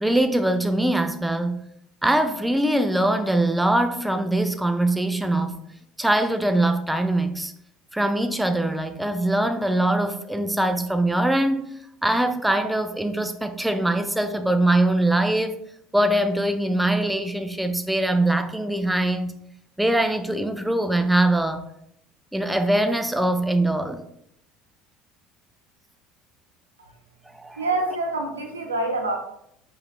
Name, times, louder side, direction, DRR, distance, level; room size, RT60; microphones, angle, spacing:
voice 1, 0.0-1.6 2.0-5.6 6.0-7.5 7.9-11.6 12.0-15.5 15.9-19.3 19.8-21.7 22.3-24.0 27.3-27.7, right 1 dB, 5° right, 8 dB, 0.5 m, -22 dB
voice 2, 27.6-29.2, right 2 dB, 80° right, 2 dB, 0.8 m, -26 dB
4.7 x 3.3 x 3.2 m, 0.74 s
figure-of-eight pair, 65°, 0 cm